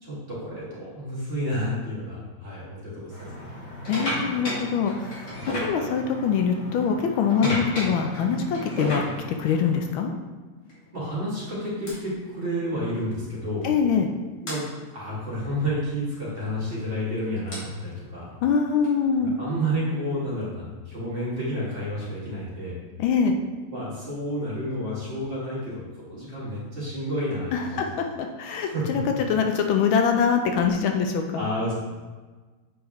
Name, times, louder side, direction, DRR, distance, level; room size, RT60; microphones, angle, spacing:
voice 1, 0.0-3.6 7.4-7.6 10.9-13.7 14.4-14.6 14.9-18.4 19.2-22.8 23.7-25.7 26.1-27.8 28.6-29.0 31.4-31.7, equal, 25° right, -8 dB, 2.3 m, -30 dB
sound 1, 3.1-9.9 10.7-10.9 11.9-12.0 13.3-13.4 13.6-13.8 14.5-14.6 16.4-19.5, equal, 55° left, 2.6 m, -34 dB
voice 2, 3.9-9.0 9.4-10.1 13.6-14.1 18.4-19.3 23.0-23.4 27.5-29.0 29.3-31.5, left 6 dB, 80° left, 4 dB, 1.4 m, -24 dB
8.2 x 4.9 x 3.1 m, 1.3 s
omnidirectional pair, 2.3 m